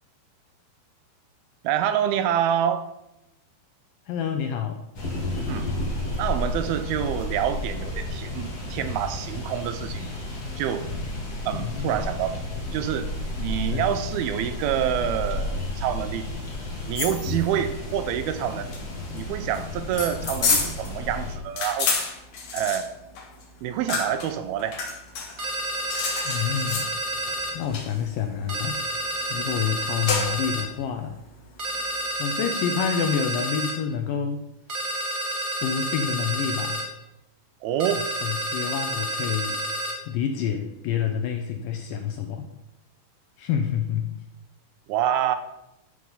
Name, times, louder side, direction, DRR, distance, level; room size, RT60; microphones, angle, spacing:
voice 1, 1.6-2.9 5.5-5.7 6.2-10.2 10.6-10.9 11.5-12.4 12.7-13.1 13.4-16.3 16.9-18.7 19.1-21.9 22.5-22.9 23.6-24.8 37.6-38.1 44.9-45.4, right 10 dB, 80° right, 10 dB, 2.4 m, -27 dB
voice 2, 4.1-4.8 11.5-12.0 13.7-14.0 26.3-26.9 27.5-28.8 29.3-31.2 32.2-34.4 35.6-36.8 38.2-39.6 40.1-42.5 43.4-44.1, left 8 dB, 80° left, 5 dB, 2.0 m, -28 dB
sound 1, 4.9-21.4, left 1 dB, 40° left, 1.4 m, -32 dB
sound 2, 17.0-32.1, left 5 dB, 60° left, 2.9 m, -31 dB
sound 3, 25.4-27.6 28.5-30.7 31.6-33.8 34.7-36.9 37.8-40.0, right 1 dB, 45° right, 1.5 m, -29 dB
13.5 x 4.8 x 5.6 m, 0.88 s
omnidirectional pair, 4.5 m